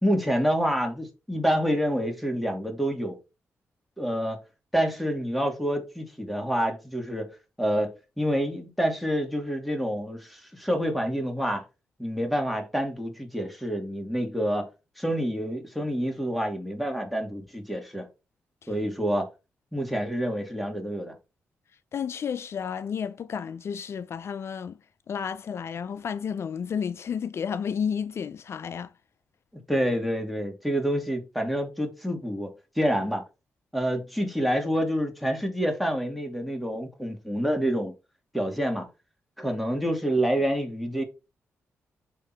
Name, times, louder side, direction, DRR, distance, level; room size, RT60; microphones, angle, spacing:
voice 1, 0.0-3.2 4.0-4.4 4.7-7.3 7.6-11.6 12.0-14.7 15.0-18.1 18.7-19.3 19.7-21.1 29.7-32.5 32.8-33.2 33.7-37.9 38.3-38.9 39.4-41.0, equal, ahead, 2.4 m, -27 dB
voice 2, 21.9-24.8 25.1-28.9, left 7 dB, 60° left, 0.4 m, -32 dB
6.7 x 3.7 x 4.6 m
cardioid pair, 65°, 5 cm